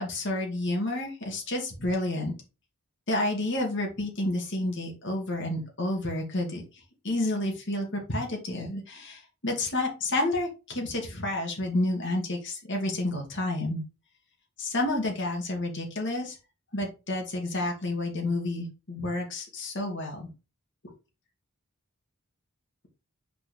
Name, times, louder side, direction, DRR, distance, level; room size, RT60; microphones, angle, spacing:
voice 1, 0.0-2.3 3.1-6.6 7.0-13.8 14.6-16.4 16.7-20.3, left 1 dB, 55° left, 1 dB, 2.2 m, -30 dB
6.4 x 4.8 x 3.2 m, 0.30 s
head